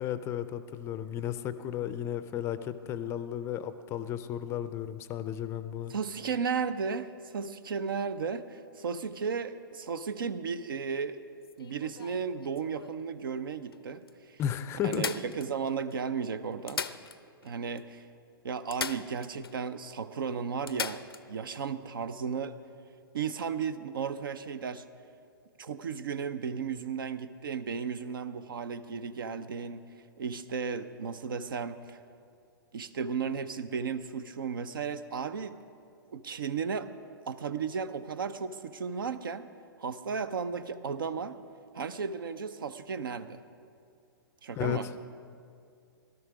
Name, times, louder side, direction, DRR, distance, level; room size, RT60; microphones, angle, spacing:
voice 1, 0.0-5.9 14.4-15.0 44.6-44.9, left 10 dB, 20° left, 13 dB, 0.5 m, -34 dB
voice 2, 5.9-11.2 11.6-14.4 14.8-16.8 17.4-18.1 18.4-22.5 23.1-24.8 25.6-29.8 30.2-32.0 32.7-35.6 36.1-36.9 37.3-39.5 39.8-41.4 41.7-43.4 44.4-44.9, right 6 dB, 65° right, 13 dB, 0.6 m, -34 dB
sound 1, 11.4-13.0 13.7-13.8 14.1-14.2 14.9-15.9 16.5-17.5 17.8-17.9 18.7-19.6 19.9-20.0 20.7-21.2 23.2-23.4, left 6 dB, 80° left, 0.5 m, -38 dB
17.0 x 12.5 x 4.7 m, 2.4 s
figure-of-eight pair, 110°, 12 cm